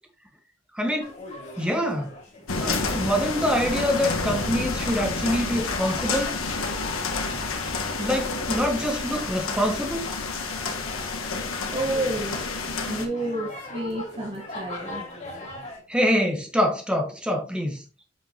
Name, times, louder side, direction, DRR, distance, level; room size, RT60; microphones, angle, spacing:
voice 1, 0.7-1.1 1.6-2.1 2.6-6.3 8.0-10.0 15.9-17.8, equal, 5° right, 1.4 m, -25 dB
sound 1, 1.0-15.8, left 2 dB, 35° left, 2.6 m, -42 dB
sound 2, 2.5-13.1, left 3 dB, 85° left, 1.4 m, -29 dB
voice 2, 11.7-12.4 12.9-15.0, right 2 dB, 25° right, 1.1 m, -30 dB
8.1 x 5.9 x 2.9 m
head